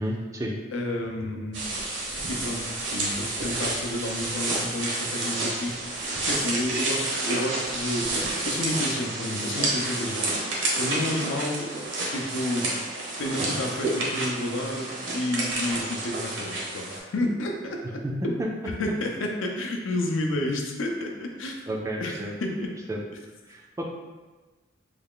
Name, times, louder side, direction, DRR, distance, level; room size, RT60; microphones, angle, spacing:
voice 1, 0.0-0.5 18.0-18.1 21.7-22.3 22.9-23.0 23.5-23.8, right 1 dB, 15° right, -1 dB, 0.3 m, -31 dB
voice 2, 0.7-1.6 2.3-2.6 2.9-8.1 8.5-11.7 12.1-12.7 13.2-18.3 18.6-21.6 22.0-22.7, left 1 dB, 85° left, 1 dB, 0.5 m, -30 dB
sound 1, 1.5-17.0, right 2 dB, 75° right, 0.8 m, -29 dB
3.3 x 2.3 x 3.6 m, 1.3 s
head